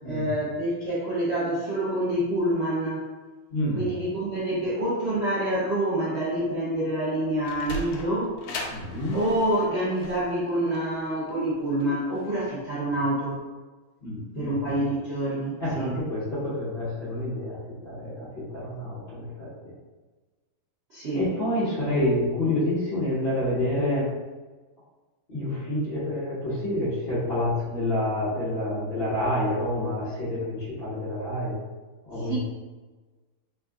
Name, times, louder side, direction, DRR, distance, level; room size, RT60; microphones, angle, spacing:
voice 1, 0.0-3.1 3.8-8.3 9.1-13.4 14.3-15.9 20.9-21.2 32.2-32.4, right 1 dB, 60° right, -9 dB, 0.6 m, -27 dB
voice 2, 3.5-3.9 8.7-9.2 14.0-14.7 15.6-17.6 17.8-19.5 21.1-24.0 25.3-31.6 32.0-32.4, left 1 dB, 35° left, -12 dB, 1.0 m, -28 dB
Sliding door, 7.1-12.3, left 1 dB, 75° left, 1.3 m, -38 dB
3.7 x 2.5 x 3.5 m, 1.3 s
omnidirectional pair, 2.4 m